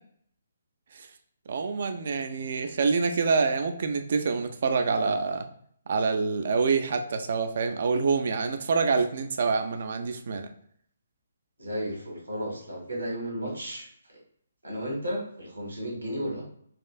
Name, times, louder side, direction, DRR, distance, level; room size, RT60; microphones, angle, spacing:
voice 1, 1.5-5.5 5.9-10.5, right 4 dB, 50° right, 7 dB, 0.4 m, -26 dB
voice 2, 11.6-14.2 14.6-16.5, equal, 80° right, -1 dB, 1.3 m, -34 dB
4.2 x 2.5 x 2.3 m, 0.65 s
figure-of-eight pair, 135°, 0 cm